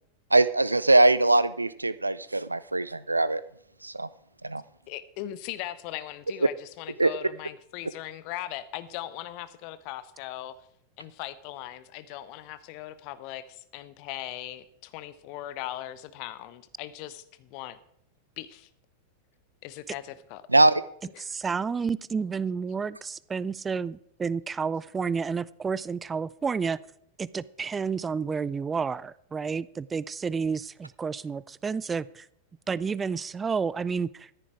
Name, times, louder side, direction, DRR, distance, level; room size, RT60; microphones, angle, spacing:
voice 1, 0.3-3.4 3.8-4.1 4.4-4.6 7.0-7.1 20.5-20.8, right 2 dB, 85° right, 17 dB, 0.4 m, -21 dB
voice 2, 4.9-10.5 11.0-17.8 18.4-18.7 19.6-20.4 21.1-21.4, left 14 dB, 45° left, 14 dB, 0.9 m, -39 dB
voice 3, 21.2-26.8 27.2-32.3 32.7-34.3, right 5 dB, 15° right, 21 dB, 0.4 m, -30 dB
14.0 x 10.0 x 4.7 m, 0.70 s
figure-of-eight pair, 90°, 0 cm